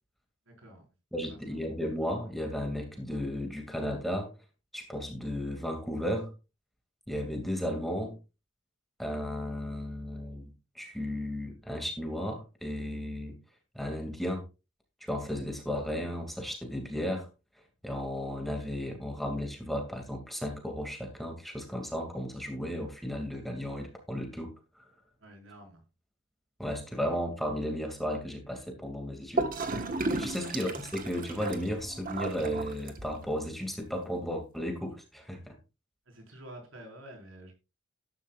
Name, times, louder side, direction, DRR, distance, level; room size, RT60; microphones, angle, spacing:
voice 1, 0.4-0.8 1.3-1.6 25.2-25.8 30.3-30.6 36.0-37.5, right 1 dB, 65° right, 5.2 m, -49 dB
voice 2, 1.1-4.3 4.7-6.3 7.1-8.2 9.0-13.3 13.7-14.4 15.0-17.3 17.8-24.8 26.6-29.7 30.1-35.6, equal, ahead, 2.5 m, -34 dB
Gurgling / Toilet flush, 29.4-33.3, right 3 dB, 40° right, 1.5 m, -34 dB
14.0 x 12.0 x 2.5 m
head